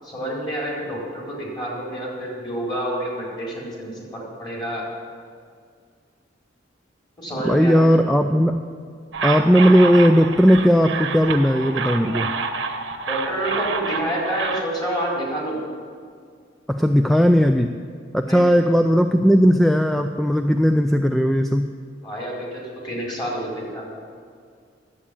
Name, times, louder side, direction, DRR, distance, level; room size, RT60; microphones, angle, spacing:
voice 1, 0.0-4.9 7.2-7.8 13.1-15.6 18.2-18.6 22.0-24.0, right 1 dB, 25° left, -4 dB, 4.2 m, -28 dB
voice 2, 7.4-8.6 9.2-12.3 16.7-17.7 18.1-21.7, equal, ahead, 6 dB, 0.3 m, -17 dB
sound 1, 9.1-14.6, right 4 dB, 75° right, 1.0 m, -28 dB
11.0 x 8.4 x 8.4 m, 2.1 s
head